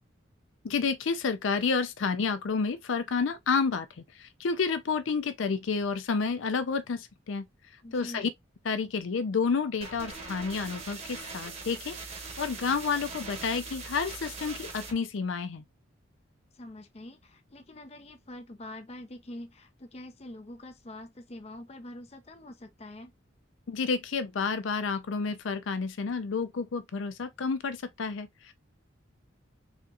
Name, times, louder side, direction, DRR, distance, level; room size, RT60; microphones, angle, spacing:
voice 1, 0.6-3.9 4.2-7.5 7.9-8.3 8.7-12.0 12.4-15.6 23.7-28.5, left 5 dB, 75° left, 0.5 m, -30 dB
voice 2, 7.8-8.3 16.5-23.1, left 1 dB, 30° left, 0.6 m, -45 dB
sound 1, 9.8-14.9, right 4 dB, 35° right, 1.0 m, -41 dB
4.2 x 2.9 x 2.4 m
head